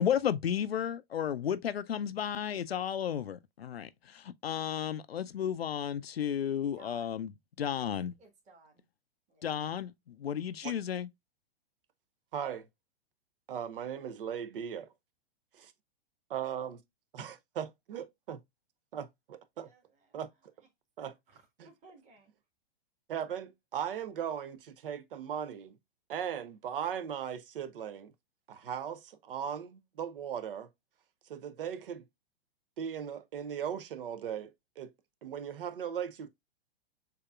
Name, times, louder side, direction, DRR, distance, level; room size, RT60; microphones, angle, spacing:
voice 1, 0.0-7.3 7.6-8.1 9.4-11.1, left 9 dB, 80° left, 0.5 m, -33 dB
voice 2, 6.7-7.2 7.8-7.9 8.2-8.9 9.3-9.5 19.5-20.2 21.3-22.3, right 3 dB, 25° right, 1.5 m, -59 dB
voice 3, 12.3-12.7 13.5-14.9 15.5-15.7 16.3-16.8 17.1-18.4 18.9-19.7 20.1-20.3 21.0-21.1 21.6-21.7 23.1-25.8 26.1-28.1 28.5-30.7 31.3-32.0 32.8-34.9 35.2-36.3, right 8 dB, 60° right, 0.9 m, -38 dB
6.7 x 2.8 x 2.3 m
figure-of-eight pair, 105°, 30 cm